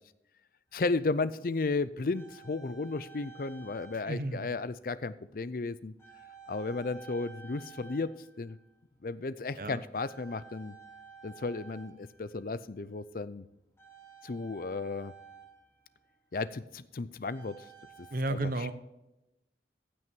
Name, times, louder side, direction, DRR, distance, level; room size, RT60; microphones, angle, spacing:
voice 1, 0.7-5.9 6.5-8.6 9.0-10.7 11.2-13.4 14.2-15.1 16.3-17.7 18.0-18.7, left 3 dB, 50° left, 16 dB, 0.5 m, -34 dB
sound 1, 0.7-0.8 1.7-4.3 4.5-4.8 6.0-8.7 9.0-9.4 9.9-12.6 13.8-16.1 17.3-18.1, right 6 dB, 15° left, 2.9 m, -53 dB
voice 2, 4.1-4.6 9.6-9.8 18.1-18.7, right 2 dB, 50° right, 11 dB, 0.9 m, -33 dB
15.0 x 6.1 x 4.5 m, 0.89 s
head